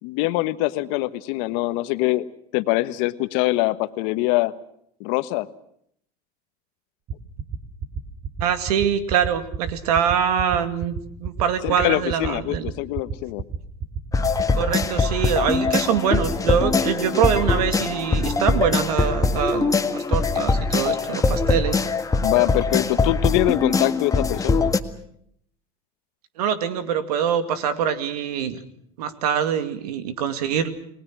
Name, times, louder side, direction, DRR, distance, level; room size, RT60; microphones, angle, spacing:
voice 1, 0.0-2.3 2.5-4.5 5.0-5.5 11.6-13.4 22.2-24.7, left 19 dB, 65° left, 13 dB, 1.3 m, -23 dB
sound 1, 7.1-16.0, right 6 dB, 45° right, 3.2 m, -29 dB
voice 2, 8.4-12.7 14.5-21.9 26.4-28.6 29.0-30.7, right 8 dB, 80° right, 10 dB, 2.4 m, -24 dB
sound 2, 14.1-24.8, left 4 dB, 15° left, 1.7 m, -22 dB
30.0 x 20.0 x 6.2 m, 0.68 s
hypercardioid pair, 90°, 19 cm